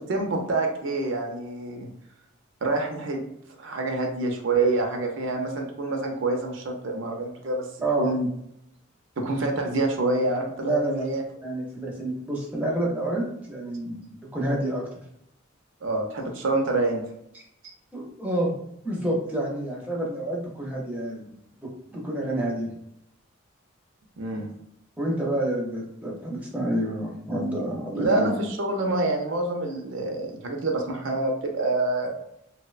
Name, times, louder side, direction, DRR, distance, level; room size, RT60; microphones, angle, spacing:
voice 1, 0.1-1.9 2.6-3.2 3.6-7.7 8.0-8.3 9.2-11.2 15.8-17.0 24.2-24.5 27.9-32.1, right 2 dB, 65° right, 3 dB, 0.5 m, -26 dB
voice 2, 10.6-11.1 11.4-14.8 17.9-18.6 18.8-22.7 24.3-24.5 25.0-28.4, right 1 dB, 10° right, -3 dB, 0.5 m, -28 dB
2.8 x 2.1 x 2.4 m, 0.75 s
head